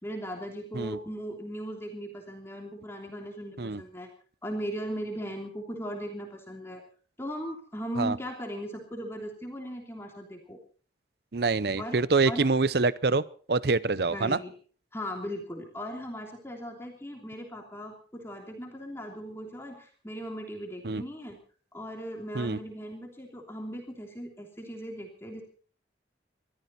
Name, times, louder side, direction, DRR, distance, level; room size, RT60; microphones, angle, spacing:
voice 1, 0.0-4.1 4.4-6.8 7.2-10.6 11.8-12.0 12.2-12.4 14.1-14.5 14.9-21.4 21.7-25.4, equal, 15° left, 1 dB, 3.1 m, -38 dB
voice 2, 11.3-13.2 13.5-14.4 20.8-21.0 22.3-22.6, right 3 dB, 60° right, 18 dB, 0.7 m, -25 dB
22.5 x 14.0 x 4.2 m, 0.42 s
head